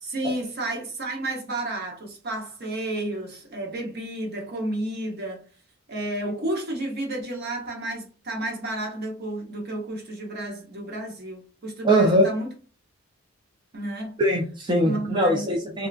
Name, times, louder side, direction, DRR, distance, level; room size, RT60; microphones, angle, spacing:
voice 1, 0.0-5.4 5.9-12.5 13.7-14.1 14.8-15.5, right 1 dB, 50° right, 1.0 m, -31 dB
voice 2, 11.8-12.3 14.2-15.9, right 1 dB, 20° right, 0.5 m, -21 dB
3.3 x 2.7 x 2.4 m
head